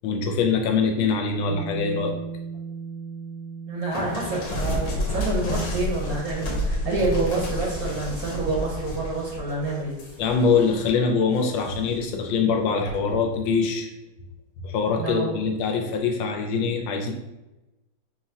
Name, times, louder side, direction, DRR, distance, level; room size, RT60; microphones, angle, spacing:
voice 1, 0.0-2.1 10.2-13.9 14.6-17.1, left 5 dB, 75° left, 3 dB, 1.3 m, -23 dB
Bass guitar, 1.5-7.7, right 5 dB, 80° right, 1.4 m, -39 dB
voice 2, 3.7-10.0 15.0-15.3, right 3 dB, 60° right, -3 dB, 1.1 m, -28 dB
sound 1, 3.9-10.9 11.4-12.0 12.9-13.2, left 1 dB, 55° left, 1.1 m, -30 dB
4.5 x 3.0 x 2.7 m, 1.0 s
omnidirectional pair, 2.2 m